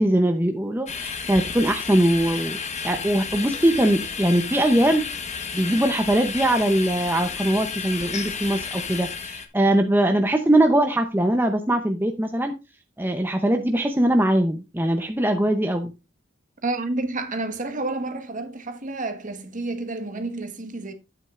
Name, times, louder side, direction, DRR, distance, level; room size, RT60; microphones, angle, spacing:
voice 1, 0.0-5.0 5.5-12.5 13.0-15.9, right 1 dB, 10° right, 0.7 m, -21 dB
sound 1, 0.9-9.5, left 5 dB, 35° left, 1.2 m, -32 dB
voice 2, 16.6-20.9, right 2 dB, 40° right, 1.3 m, -30 dB
10.0 x 8.7 x 2.5 m
head